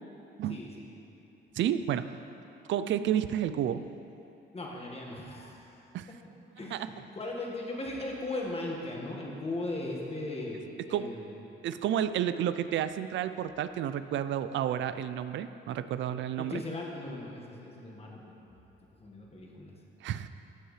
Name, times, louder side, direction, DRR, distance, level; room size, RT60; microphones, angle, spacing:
voice 1, 0.5-1.0 4.5-5.8 6.1-6.2 6.6-11.3 16.4-18.6 19.0-19.8, left 2 dB, 30° left, -2 dB, 1.6 m, -38 dB
voice 2, 1.5-2.1 2.7-3.8 5.9-6.1 6.7-6.9 10.9-11.1 11.6-16.6 20.0-20.3, right 10 dB, 70° right, 12 dB, 0.4 m, -31 dB
14.5 x 6.3 x 3.2 m, 2.9 s
cardioid pair, 90°, 20 cm